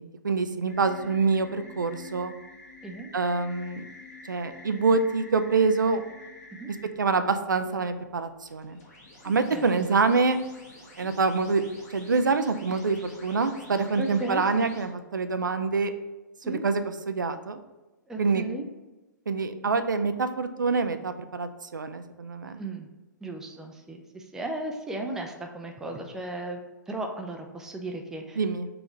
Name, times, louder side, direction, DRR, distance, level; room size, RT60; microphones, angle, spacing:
voice 1, 0.0-2.3 3.1-3.8 4.3-6.0 6.7-8.8 9.2-10.4 11.0-11.6 11.9-15.9 16.5-16.8 17.1-17.6 18.2-18.4 19.3-22.6 28.4-28.7, right 4 dB, 75° right, 10 dB, 0.4 m, -26 dB
sound 1, 0.7-6.9 8.4-14.9, left 2 dB, 45° left, 1.4 m, -48 dB
voice 2, 9.2-9.7 12.7-12.8 14.0-14.4 16.4-16.6 18.1-18.6 22.6-22.9 23.2-28.4, right 2 dB, 5° right, 3 dB, 0.4 m, -36 dB
3.8 x 2.9 x 4.4 m, 1.1 s
figure-of-eight pair, 115°, 10 cm